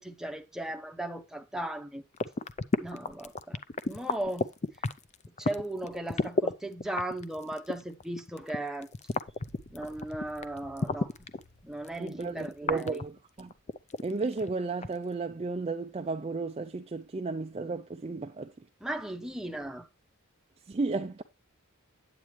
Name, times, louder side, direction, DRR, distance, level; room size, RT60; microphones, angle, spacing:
voice 1, 0.0-2.0 2.8-3.6 3.8-4.5 5.3-8.9 9.7-11.3 11.6-13.0 18.8-19.9, right 1 dB, ahead, 0.8 m, -37 dB
sound 1, 2.1-6.5 6.8-11.4 11.8-14.5 14.8-14.9, left 3 dB, 30° left, 0.5 m, -31 dB
sound 2, 9.4-13.7, left 1 dB, 60° left, 1.7 m, -58 dB
voice 2, 12.0-13.1 13.4-13.5 14.0-18.5 20.7-21.2, right 3 dB, 25° right, 0.4 m, -33 dB
8.9 x 8.6 x 3.1 m
head